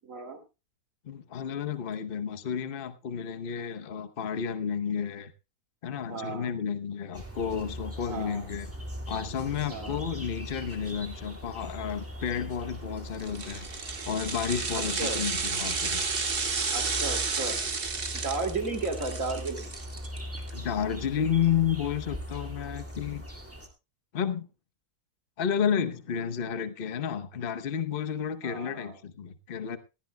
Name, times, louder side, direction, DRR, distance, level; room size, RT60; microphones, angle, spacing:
voice 1, 0.0-0.4 6.1-6.5 8.1-8.5 9.7-10.0 14.7-15.2 16.7-17.6 18.1-19.7 28.4-29.0, right 3 dB, 60° right, 5 dB, 2.8 m, -34 dB
voice 2, 1.0-5.3 5.8-8.7 9.1-13.7 14.0-16.0 20.5-23.2 24.1-24.5 25.4-29.8, left 8 dB, 40° left, 10 dB, 1.0 m, -31 dB
sound 1, 7.1-23.7, equal, 10° right, 2.1 m, -40 dB
sound 2, 13.2-20.5 20.8-20.9, right 4 dB, 40° right, 1.3 m, -32 dB
19.5 x 15.0 x 2.2 m, 0.28 s
omnidirectional pair, 1.6 m